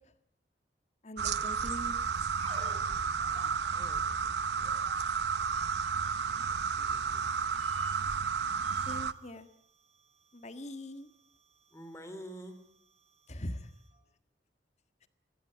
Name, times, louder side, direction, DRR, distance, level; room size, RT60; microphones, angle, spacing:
voice 1, 1.0-2.0 8.9-9.5 10.3-11.1 13.3-13.7, left 1 dB, 40° left, 11 dB, 1.6 m, -41 dB
sound 1, 1.2-9.1, right 6 dB, 75° right, 0.9 m, -32 dB
sound 2, 1.5-14.0, right 2 dB, 35° right, 5.0 m, -54 dB
voice 2, 3.7-4.7 6.0-7.6 11.7-12.6, equal, 15° left, 9 dB, 3.4 m, -52 dB
22.5 x 16.5 x 9.9 m, 0.70 s
head